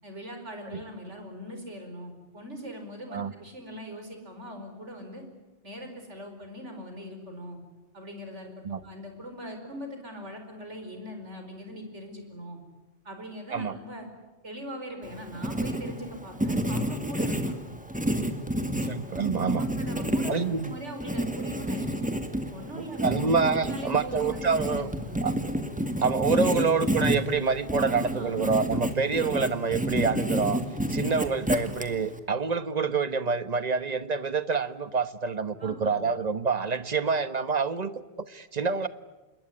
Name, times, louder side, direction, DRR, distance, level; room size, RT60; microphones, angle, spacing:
voice 1, 0.0-5.2 5.6-7.6 7.9-12.6 13.1-14.1 14.4-17.7 19.6-22.1 22.5-23.0 23.4-25.2 27.8-28.4 35.6-36.1, equal, 90° right, 5 dB, 5.1 m, -41 dB
Writing, 15.0-32.2, equal, 5° right, 2.1 m, -30 dB
voice 2, 18.8-19.7 20.3-20.8 22.8-24.9 25.2-25.3 26.0-30.6 30.9-38.9, right 5 dB, 40° right, 12 dB, 1.2 m, -27 dB
27.0 x 21.5 x 9.8 m, 1.1 s
omnidirectional pair, 1.2 m